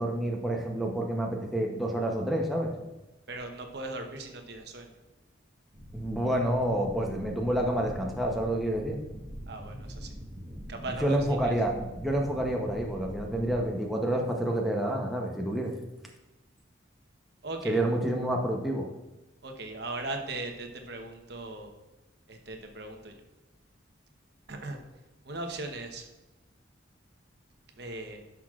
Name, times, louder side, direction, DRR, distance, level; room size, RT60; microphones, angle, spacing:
voice 1, 0.0-2.7 5.9-9.0 11.0-15.8 17.6-18.9, right 1 dB, ahead, -1 dB, 0.7 m, -28 dB
voice 2, 3.3-4.9 9.5-10.1 10.7-11.2 11.4-11.5 17.4-17.8 19.4-21.7 22.3-23.1 24.5-24.8 25.2-26.1 27.8-28.2, right 2 dB, 55° right, 4 dB, 0.9 m, -38 dB
sound 1, 5.7-13.6, equal, 35° right, 1.4 m, -43 dB
11.0 x 6.0 x 2.4 m, 1.0 s
head